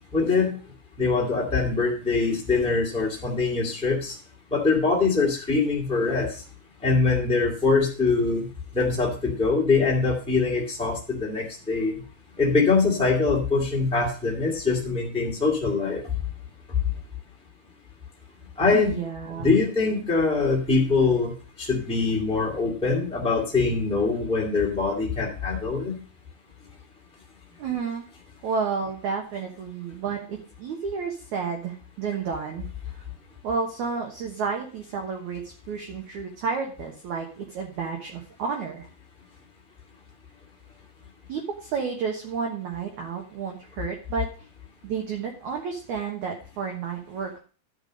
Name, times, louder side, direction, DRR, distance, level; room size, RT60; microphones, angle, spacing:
voice 1, 0.1-0.6 1.0-4.1 4.5-6.4 6.8-8.5 8.7-11.9 12.4-16.0 18.6-18.9 19.4-21.3 21.6-26.0, left 4 dB, 5° left, -4 dB, 0.9 m, -23 dB
voice 2, 18.7-19.5 27.6-28.0 28.4-32.7 32.9-33.0 33.4-35.4 35.7-38.9 41.3-44.3 44.8-47.4, right 5 dB, 65° right, 2 dB, 2.0 m, -31 dB
12.0 x 5.4 x 6.3 m, 0.37 s
omnidirectional pair, 4.9 m